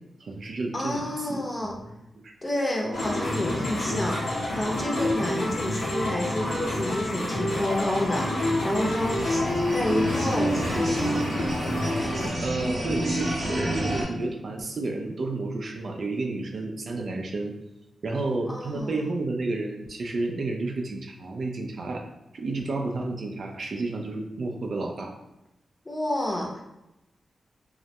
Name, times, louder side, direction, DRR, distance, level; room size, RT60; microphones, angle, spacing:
voice 1, 0.2-1.7 2.2-2.3 12.4-17.5 18.0-22.0 22.3-25.1, right 2 dB, 65° right, 2 dB, 0.3 m, -31 dB
voice 2, 0.7-1.7 2.4-9.4 9.7-11.2 18.5-19.0 25.9-26.6, left 1 dB, 25° left, 0 dB, 0.6 m, -30 dB
sound 1, 2.9-12.3, left 1 dB, 85° left, 0.6 m, -27 dB
sound 2, 8.7-14.0, right 1 dB, 80° right, 0.8 m, -31 dB
2.2 x 2.1 x 2.7 m, 0.93 s
cardioid pair, 55°, 0 cm